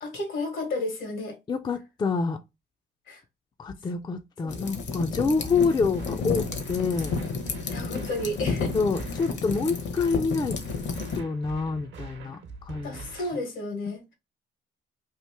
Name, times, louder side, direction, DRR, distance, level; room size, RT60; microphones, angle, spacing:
voice 1, 0.0-1.4 3.1-3.2 4.4-4.5 5.3-5.4 7.7-8.7 12.8-14.1, left 2 dB, 80° left, 1.3 m, -32 dB
voice 2, 1.5-2.4 3.6-7.1 8.7-10.6 11.1-13.1, left 4 dB, 20° left, 0.3 m, -27 dB
sound 1, 4.5-11.2, left 4 dB, 65° left, 0.9 m, -31 dB
sound 2, 5.4-13.4, right 4 dB, 65° right, 0.8 m, -44 dB
3.0 x 2.5 x 3.3 m
cardioid pair, 90°, 20 cm